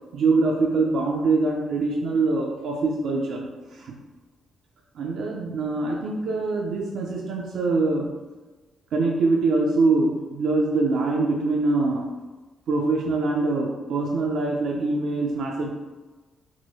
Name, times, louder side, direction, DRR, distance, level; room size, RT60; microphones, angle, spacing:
voice 1, 0.1-3.9 5.0-8.2 8.9-12.1 12.7-15.7, right 3 dB, 70° right, -1 dB, 0.3 m, -24 dB
2.9 x 2.7 x 2.7 m, 1.2 s
supercardioid pair, 50°, 0 cm